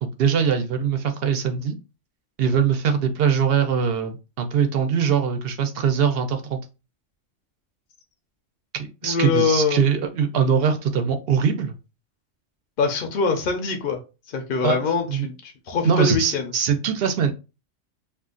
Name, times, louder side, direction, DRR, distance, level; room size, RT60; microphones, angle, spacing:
voice 1, 0.0-1.8 2.4-6.6 8.7-11.7 14.6-14.8 15.1-15.3 15.8-17.3, right 7 dB, 60° right, 0.7 m, -22 dB
voice 2, 9.0-9.8 12.8-14.0 14.3-16.5, left 4 dB, 55° left, 0.7 m, -23 dB
2.5 x 2.3 x 3.7 m
omnidirectional pair, 1.3 m